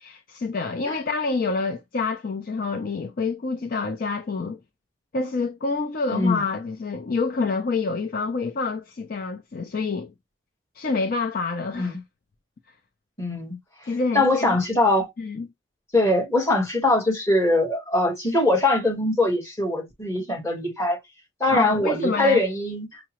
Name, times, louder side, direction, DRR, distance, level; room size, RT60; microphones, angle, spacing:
voice 1, 0.0-4.6 5.1-10.1 10.8-12.0 13.8-14.6 15.2-15.5 21.5-22.4, left 4 dB, 45° left, 0.4 m, -27 dB
voice 2, 6.1-6.4 11.8-12.0 13.2-13.6 14.1-15.1 15.9-21.0 21.4-23.0, left 2 dB, 15° left, 1.3 m, -22 dB
5.6 x 2.0 x 2.9 m
head